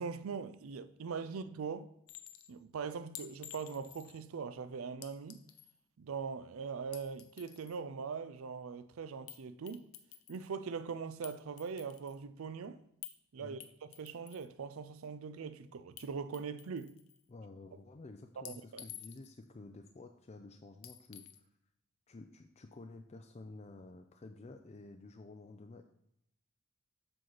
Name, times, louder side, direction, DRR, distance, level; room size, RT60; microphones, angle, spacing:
voice 1, 0.0-1.9 2.5-5.4 6.0-9.9 10.3-12.8 13.3-16.9 18.4-18.8, right 5 dB, 70° right, 0.4 m, -41 dB
Chink clink, 2.1-2.5 3.2-4.2 5.0-5.8 6.8-7.8 9.3-9.4 9.7-10.5 11.2-12.2 13.0-13.2 13.6-14.5 16.0-16.1 16.3-17.2 18.5-19.4 20.8-21.4, left 12 dB, 70° left, 0.6 m, -51 dB
voice 2, 17.3-21.3 22.1-25.8, left 2 dB, 30° left, 0.4 m, -51 dB
7.7 x 5.9 x 3.9 m
head